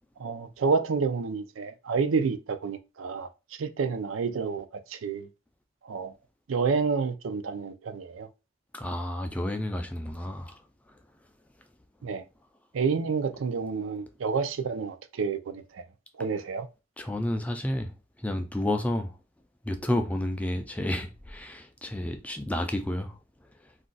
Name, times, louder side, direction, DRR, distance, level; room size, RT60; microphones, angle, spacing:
voice 1, 0.2-3.3 3.6-5.3 5.8-6.1 6.5-8.3 12.0-12.2 12.7-15.8 16.2-16.7, right 5 dB, 90° right, 0.4 m, -29 dB
voice 2, 8.7-10.6 17.0-17.9 18.2-19.2 19.6-23.2, left 1 dB, 5° left, 0.3 m, -30 dB
2.5 x 2.3 x 3.9 m
head